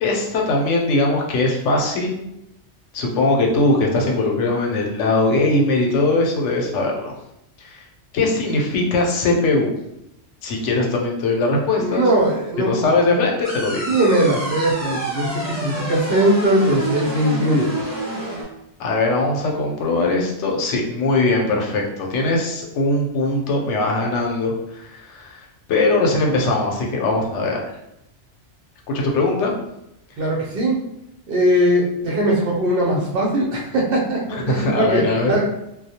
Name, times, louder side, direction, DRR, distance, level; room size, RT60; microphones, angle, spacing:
voice 1, 0.0-2.3 2.9-7.1 7.6-7.8 8.1-9.8 10.4-12.1 12.6-14.0 18.8-27.6 28.9-29.5 34.3-35.3, left 2 dB, 85° left, 0 dB, 0.9 m, -20 dB
voice 2, 11.8-12.7 13.9-17.7 30.2-30.8 31.3-35.4, right 1 dB, 60° right, -2 dB, 0.7 m, -20 dB
sound 1, 13.4-18.4, right 1 dB, 20° right, 0.4 m, -28 dB
2.3 x 2.0 x 2.7 m, 0.84 s
omnidirectional pair, 1.2 m